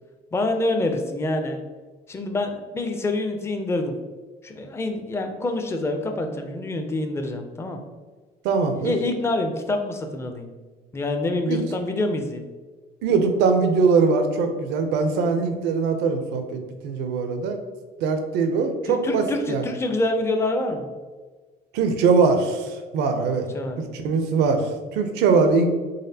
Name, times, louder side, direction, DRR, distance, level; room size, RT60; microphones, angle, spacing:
voice 1, 0.3-1.6 2.1-4.0 4.4-7.8 8.8-10.5 10.9-12.5 18.9-20.9 23.5-23.8, left 2 dB, 15° left, 5 dB, 0.4 m, -26 dB
voice 2, 8.4-8.9 11.5-11.6 13.0-17.6 18.0-19.6 21.7-23.5 23.9-25.7, right 4 dB, 85° right, 6 dB, 0.5 m, -21 dB
4.0 x 3.2 x 2.7 m, 1.3 s
cardioid pair, 110°, 17 cm